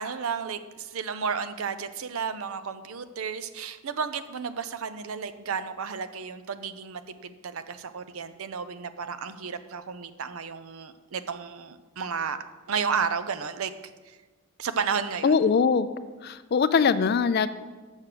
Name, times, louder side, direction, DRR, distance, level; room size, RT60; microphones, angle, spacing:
voice 1, 0.0-12.4 12.7-13.7 14.6-15.5, right 6 dB, 70° right, 11 dB, 0.5 m, -32 dB
voice 2, 15.2-15.9 16.2-17.5, left 5 dB, 45° left, 14 dB, 0.3 m, -22 dB
7.3 x 6.2 x 6.7 m, 1.3 s
head